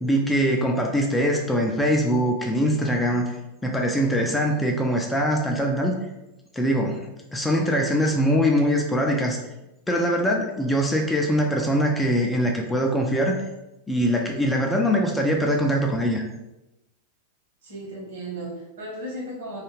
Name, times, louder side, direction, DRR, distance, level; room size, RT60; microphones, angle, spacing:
voice 1, 0.0-3.3 3.6-5.9 6.5-7.0 7.3-9.4 9.9-13.4 13.9-16.2, equal, 5° left, 1 dB, 0.3 m, -22 dB
voice 2, 14.7-15.2 17.6-19.6, right 1 dB, 60° right, -3 dB, 1.0 m, -36 dB
2.4 x 2.3 x 3.0 m, 0.96 s
figure-of-eight pair, 90°, 0 cm